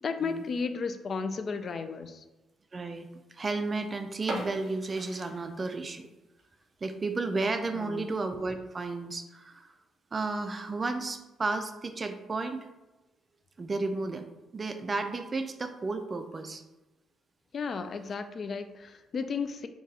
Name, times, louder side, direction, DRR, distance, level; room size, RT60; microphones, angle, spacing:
voice 1, 0.0-2.2 7.7-8.1 17.5-19.7, left 5 dB, 50° left, 9 dB, 0.3 m, -34 dB
voice 2, 2.7-3.1 3.4-6.1 6.8-9.7 10.1-12.6 13.6-14.2 14.5-16.6, right 3 dB, 30° right, 7 dB, 0.4 m, -33 dB
sound 1, 4.2-6.1 6.4-6.5 7.0-7.2 7.6-7.7 8.0-8.1 8.8-9.1, right 2 dB, 50° right, 1.0 m, -40 dB
3.7 x 2.4 x 4.1 m, 1.1 s
cardioid pair, 90°, 0 cm